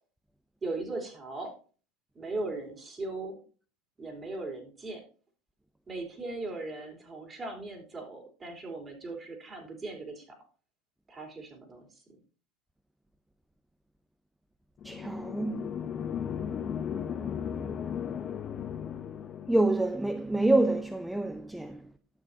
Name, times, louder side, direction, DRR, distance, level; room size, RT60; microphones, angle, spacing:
voice 1, 0.6-1.5 2.2-3.4 4.0-5.0 5.9-10.4 11.1-12.2, right 2 dB, 25° right, 3.4 m, -38 dB
sound 1, 14.8-19.7, left 8 dB, 35° left, 0.9 m, -36 dB
voice 2, 14.8-15.7 19.5-21.8, right 2 dB, 5° right, 0.5 m, -27 dB
12.0 x 7.1 x 2.8 m
hypercardioid pair, 90°, 0 cm